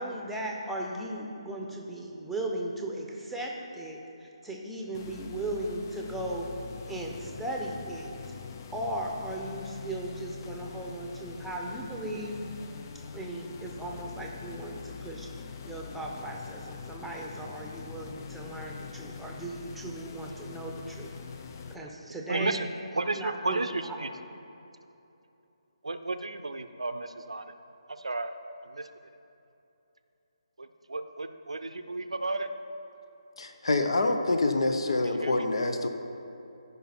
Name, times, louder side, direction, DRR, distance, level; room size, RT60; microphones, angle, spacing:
voice 1, 0.0-6.5 6.9-8.1 8.7-12.4 13.1-15.3 15.7-21.1 21.7-22.6 23.2-23.6, right 1 dB, ahead, -1 dB, 0.9 m, -37 dB
sound 1, 4.9-21.8, left 6 dB, 35° left, 0.5 m, -43 dB
voice 2, 21.8-22.7 22.9-24.1 25.8-27.5 27.9-28.3 28.6-28.9 30.6-32.5 35.2-35.4, right 2 dB, 75° right, 10 dB, 0.6 m, -33 dB
voice 3, 33.4-35.9, left 2 dB, 60° left, 6 dB, 0.9 m, -26 dB
14.0 x 5.5 x 4.3 m, 2.9 s
figure-of-eight pair, 145°, 3 cm